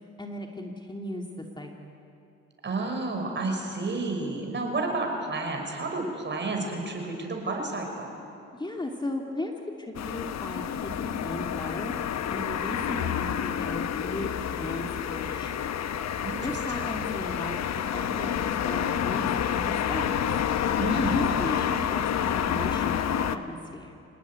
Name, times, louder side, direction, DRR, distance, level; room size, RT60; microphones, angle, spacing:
voice 1, 0.2-1.7 8.5-9.5 9.8-11.9 12.3-15.6 16.4-20.3 21.1-23.9, left 1 dB, 15° left, 1 dB, 2.4 m, -36 dB
voice 2, 2.6-8.1 16.2-16.8 20.8-21.2, right 3 dB, 40° right, 2 dB, 5.9 m, -31 dB
sound 1, 9.9-23.4, left 9 dB, 60° left, 1.2 m, -28 dB
26.0 x 19.5 x 9.4 m, 2.7 s
cardioid pair, 90°, 30 cm